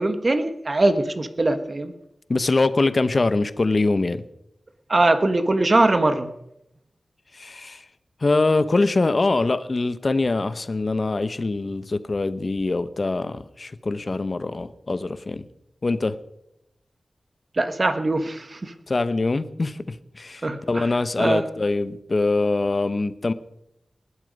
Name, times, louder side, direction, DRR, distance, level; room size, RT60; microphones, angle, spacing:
voice 1, 0.0-1.9 4.9-6.3 17.6-18.7 20.4-20.9 21.2-21.5, right 2 dB, 40° right, 1.3 m, -21 dB
voice 2, 2.3-4.2 7.3-7.8 8.2-15.5 15.8-16.2 18.9-23.3, left 3 dB, 45° left, 0.9 m, -23 dB
20.0 x 11.5 x 5.3 m
wide cardioid pair, 85°, 0 cm